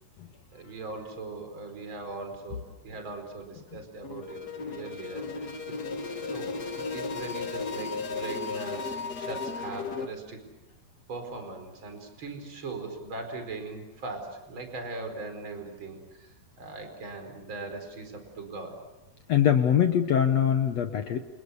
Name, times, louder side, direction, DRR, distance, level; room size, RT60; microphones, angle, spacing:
voice 1, 0.5-10.4 11.1-18.8, right 3 dB, 30° right, 6 dB, 5.1 m, -40 dB
sound 1, 4.0-10.1, left 4 dB, 65° left, 0.9 m, -35 dB
voice 2, 19.3-21.2, left 9 dB, 80° left, 7 dB, 1.5 m, -23 dB
29.5 x 29.0 x 7.0 m, 1.0 s
omnidirectional pair, 4.7 m